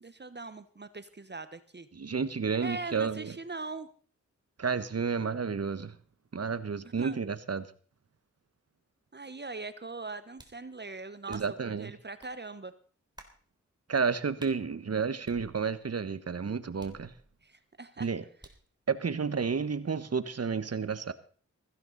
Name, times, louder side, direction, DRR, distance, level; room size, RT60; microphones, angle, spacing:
voice 1, 0.0-1.9 2.6-3.9 7.0-7.2 9.1-12.7 17.4-18.1, right 3 dB, 35° right, 12 dB, 1.2 m, -41 dB
voice 2, 1.9-3.3 4.6-6.0 6.3-7.7 11.3-11.9 13.9-17.1 18.0-18.2 18.9-21.1, right 5 dB, 50° right, 13 dB, 1.3 m, -31 dB
sound 1, 10.4-10.7 11.3-11.7 12.2-12.4 13.2-13.4 14.4-14.6 15.2-15.9 16.8-17.5 18.4-18.7, right 1 dB, 15° right, 3.5 m, -53 dB
16.0 x 15.5 x 4.1 m, 0.42 s
cardioid pair, 40°, 31 cm